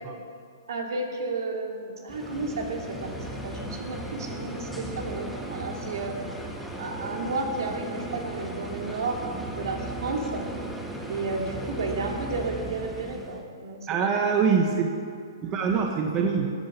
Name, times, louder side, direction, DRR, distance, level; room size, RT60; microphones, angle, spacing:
voice 1, 0.7-3.1 3.4-6.1 6.8-10.5 11.1-14.1, right 3 dB, 70° right, 1 dB, 2.8 m, -32 dB
sound 1, 2.1-13.4, right 1 dB, ahead, 1.4 m, -36 dB
voice 2, 13.9-14.9 15.4-16.5, right 5 dB, 25° right, 2 dB, 1.3 m, -24 dB
14.0 x 9.0 x 8.4 m, 2.2 s
hypercardioid pair, 135°, 2 cm